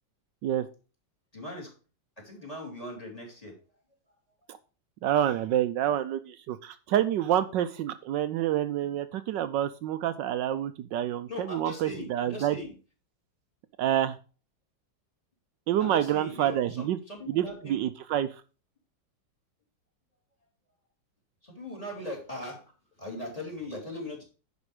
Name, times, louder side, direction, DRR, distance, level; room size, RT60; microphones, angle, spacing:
voice 1, 1.3-1.7 2.2-3.6 11.3-12.7 15.8-17.8 21.4-22.6 23.0-24.2, left 1 dB, 20° left, 1 dB, 3.0 m, -39 dB
voice 2, 5.0-12.6 13.8-14.2 15.7-17.0 17.3-18.3, right 11 dB, 75° right, 11 dB, 1.3 m, -28 dB
10.5 x 5.3 x 4.9 m, 0.35 s
omnidirectional pair, 2.0 m